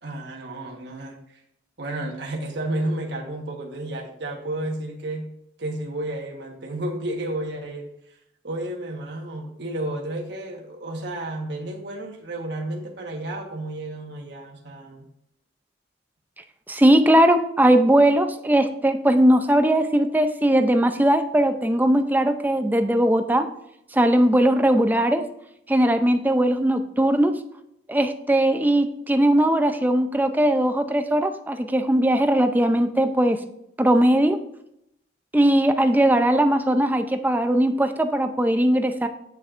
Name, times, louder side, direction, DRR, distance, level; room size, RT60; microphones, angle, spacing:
voice 1, 0.0-1.2 1.8-5.3 5.6-7.9 8.4-15.0, right 1 dB, 65° right, 0 dB, 1.4 m, -31 dB
voice 2, 16.7-23.5 23.9-25.2 25.7-27.4 27.9-33.4 33.8-34.4 35.3-39.1, right 1 dB, 10° right, 7 dB, 0.5 m, -19 dB
8.2 x 7.2 x 2.6 m, 0.77 s
head